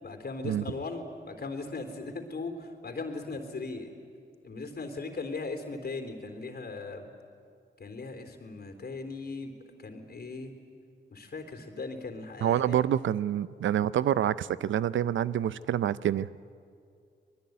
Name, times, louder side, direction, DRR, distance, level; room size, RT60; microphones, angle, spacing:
voice 1, 0.0-3.9 4.4-7.1 7.8-9.5 9.8-10.5 11.1-12.8, left 3 dB, 55° left, 6 dB, 3.7 m, -38 dB
voice 2, 12.4-16.3, right 10 dB, 80° right, 18 dB, 0.6 m, -27 dB
26.0 x 20.0 x 9.4 m, 2.3 s
cardioid pair, 50°, 19 cm